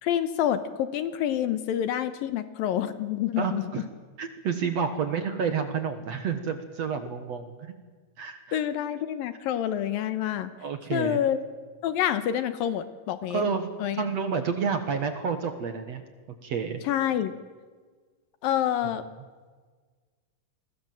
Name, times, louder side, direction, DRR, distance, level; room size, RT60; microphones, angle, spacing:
voice 1, 0.0-3.6 8.5-10.5 10.9-11.4 11.8-13.4 13.8-14.1 16.8-17.3 18.4-19.0, left 10 dB, 70° left, 12 dB, 2.6 m, -27 dB
voice 2, 3.4-3.8 4.2-7.7 8.2-8.6 10.6-11.2 13.3-16.0 16.4-16.8, right 6 dB, 55° right, 8 dB, 2.1 m, -30 dB
29.0 x 21.5 x 7.7 m, 1.5 s
omnidirectional pair, 4.5 m